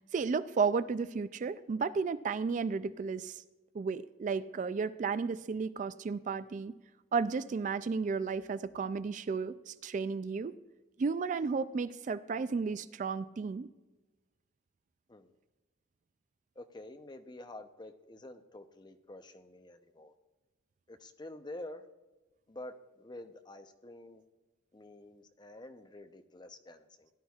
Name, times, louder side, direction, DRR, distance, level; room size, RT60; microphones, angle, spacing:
voice 1, 0.1-3.4 3.7-6.7 7.1-10.5 11.0-13.7, right 5 dB, 40° right, 14 dB, 0.3 m, -33 dB
voice 2, 16.6-20.1 20.9-21.9 22.5-24.2 24.7-27.1, left 1 dB, 25° left, 7 dB, 0.6 m, -48 dB
17.0 x 11.0 x 2.4 m, 1.2 s
head